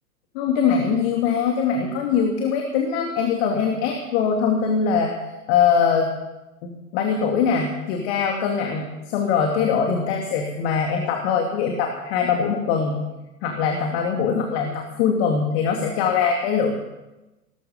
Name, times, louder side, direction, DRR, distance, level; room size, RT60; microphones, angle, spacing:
voice 1, 0.3-5.1 5.5-6.1 6.6-13.0 13.4-16.7, left 6 dB, 45° left, 2 dB, 2.6 m, -22 dB
18.5 x 14.0 x 5.4 m, 1.1 s
hypercardioid pair, 110°, 45 cm